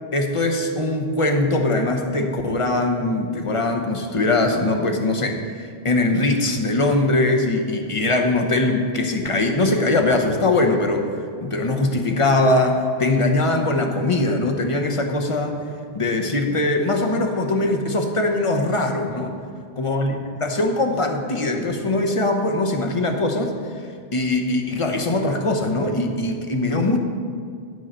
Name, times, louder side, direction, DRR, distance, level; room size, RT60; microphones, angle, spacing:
voice 1, 0.1-5.4 5.8-11.0 11.4-15.6 15.9-19.3 19.8-23.5 24.1-27.0, left 2 dB, 35° left, 4 dB, 0.8 m, -21 dB
9.3 x 5.5 x 7.4 m, 2.2 s
omnidirectional pair, 1.1 m